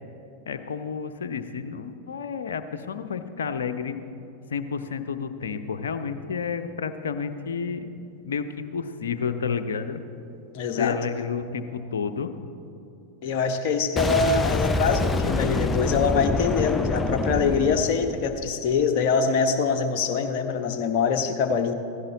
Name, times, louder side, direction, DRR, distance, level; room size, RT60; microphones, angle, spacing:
voice 1, 0.5-4.0 4.5-10.0 10.8-12.3, left 6 dB, 65° left, 9 dB, 0.7 m, -30 dB
voice 2, 10.5-11.0 13.2-21.7, left 5 dB, 45° left, 5 dB, 1.0 m, -24 dB
Boom, 14.0-18.8, left 3 dB, 15° left, 0.6 m, -26 dB
16.0 x 15.5 x 4.0 m, 2.7 s
figure-of-eight pair, 90°, 0 cm